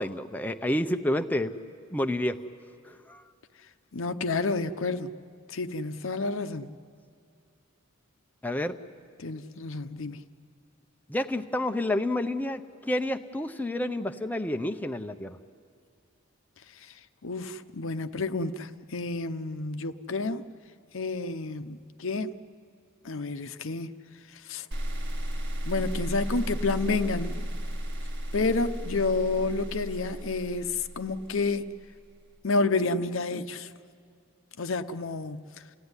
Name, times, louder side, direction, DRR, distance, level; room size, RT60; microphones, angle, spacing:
voice 1, 0.0-1.5 1.9-2.4 2.8-3.2 8.4-8.8 11.1-15.4, left 1 dB, 10° left, 0.6 m, -29 dB
voice 2, 3.9-5.1 5.5-6.7 9.2-10.2 17.2-20.4 20.9-22.3 23.0-23.9 24.5-24.7 25.6-27.4 28.3-31.7 32.4-33.7 34.6-35.4, left 3 dB, 65° left, 0.8 m, -30 dB
sound 1, 24.7-31.8, equal, 60° right, 1.6 m, -34 dB
29.5 x 16.5 x 9.7 m
head